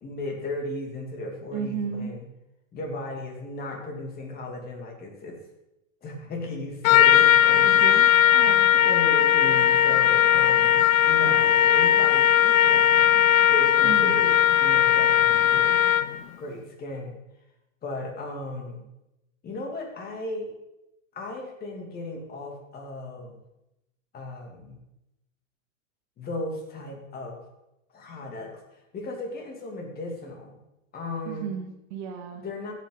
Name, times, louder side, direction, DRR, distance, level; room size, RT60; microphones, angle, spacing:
voice 1, 0.0-2.3 2.7-5.4 6.0-8.0 8.5-13.1 13.5-15.8 16.4-17.2 17.8-18.9 19.4-20.5 21.1-23.4 24.1-24.8 26.2-27.4 27.9-30.6 30.9-31.5 32.4-32.7, left 1 dB, 25° left, 1 dB, 2.7 m, -36 dB
voice 2, 1.5-2.1 7.6-8.7 13.8-14.2 31.3-32.4, right 7 dB, 50° right, 3 dB, 2.2 m, -34 dB
Trumpet, 6.8-16.2, left 10 dB, 85° left, 0.7 m, -18 dB
16.5 x 8.2 x 4.0 m, 0.90 s
hypercardioid pair, 135°, 40 cm